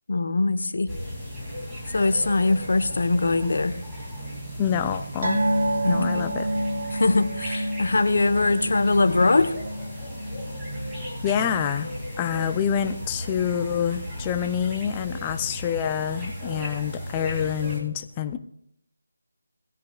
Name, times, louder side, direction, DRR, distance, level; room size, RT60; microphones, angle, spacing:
voice 1, 0.1-0.9 1.9-3.7 5.7-6.2 6.9-9.5, left 3 dB, 60° left, 10 dB, 1.2 m, -22 dB
sound 1, 0.9-17.8, equal, 5° right, 2.8 m, -35 dB
voice 2, 4.6-5.4 5.9-6.5 11.2-11.9 12.2-18.4, left 8 dB, 15° left, 9 dB, 0.6 m, -27 dB
sound 2, 5.2-12.0 12.3-12.5 12.9-13.0, right 1 dB, 55° right, 2.9 m, -29 dB
20.0 x 10.0 x 2.5 m, 0.72 s
figure-of-eight pair, 170°, 0 cm